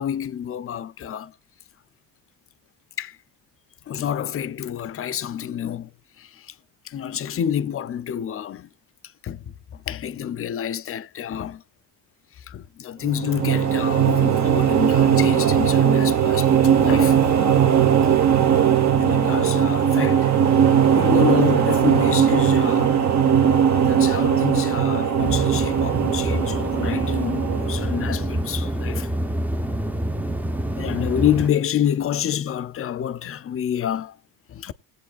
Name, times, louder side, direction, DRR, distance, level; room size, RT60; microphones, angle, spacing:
voice 1, 0.0-1.3 3.0-3.2 3.9-5.9 6.2-6.3 6.9-8.7 9.2-11.6 12.5-17.2 19.0-20.3 21.0-23.0 23.9-29.1 30.8-34.2 34.5-34.7, left 10 dB, 40° left, 0.6 m, -28 dB
sound 1, 13.0-28.4, right 8 dB, 50° right, 1.3 m, -19 dB
sound 2, 25.2-31.5, right 1 dB, 5° right, 0.7 m, -27 dB
20.0 x 8.0 x 2.4 m
cardioid pair, 115°, 37 cm